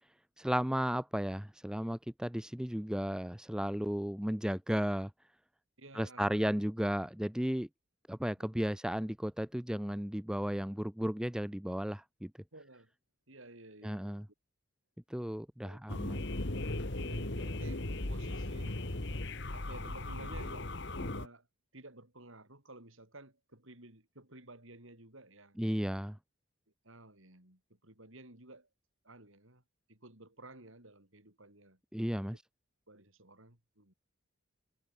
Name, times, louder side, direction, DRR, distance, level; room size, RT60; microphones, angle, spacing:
voice 1, 0.4-5.1 5.9-7.7 8.1-12.3 13.8-14.2 15.1-16.3 25.6-26.2 31.9-32.4, equal, 5° right, 0.6 m, -34 dB
voice 2, 5.8-6.5 8.4-8.5 12.5-12.9 13.3-14.2 15.6-16.0 17.0-18.8 19.5-21.5 21.7-25.6 26.8-28.7 29.0-29.6 29.9-31.8 32.9-33.9, right 2 dB, 65° right, 5.7 m, -54 dB
sound 1, 15.9-21.3, left 2 dB, 55° left, 1.8 m, -37 dB
head